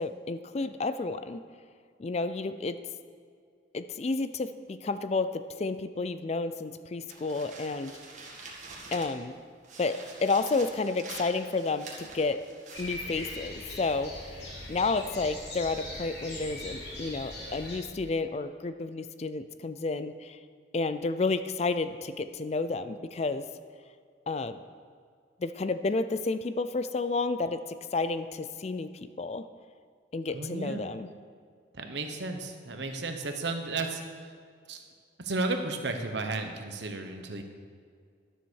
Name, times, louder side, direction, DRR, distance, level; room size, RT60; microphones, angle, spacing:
voice 1, 0.0-1.4 2.0-2.8 3.7-7.9 8.9-9.3 9.8-12.4 12.8-14.1 14.7-20.4 20.7-23.4 24.3-24.6 25.4-29.5 30.1-31.1, left 3 dB, 35° left, 12 dB, 0.4 m, -31 dB
sound 1, 7.1-9.3 9.6-13.9, right 3 dB, 40° right, 1.8 m, -46 dB
sound 2, 12.7-17.8, left 1 dB, 65° left, 3.1 m, -40 dB
voice 2, 30.3-30.8 31.7-34.0 34.7-34.8 35.2-37.4, right 3 dB, 65° right, 5 dB, 1.1 m, -33 dB
12.5 x 7.2 x 6.4 m, 2.2 s
head